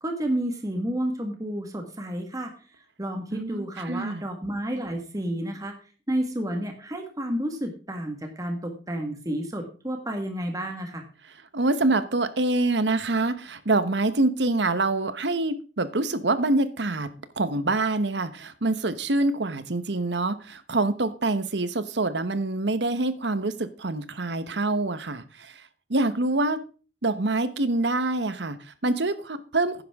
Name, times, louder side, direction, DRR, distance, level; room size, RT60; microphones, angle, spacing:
voice 1, 0.0-2.5 3.0-5.8 6.1-11.1, right 1 dB, 20° right, 4 dB, 1.7 m, -30 dB
voice 2, 3.3-4.2 11.5-17.1 17.4-25.6 25.9-26.6 27.0-29.8, right 2 dB, 70° right, 12 dB, 1.1 m, -25 dB
11.5 x 10.0 x 3.6 m, 0.36 s
head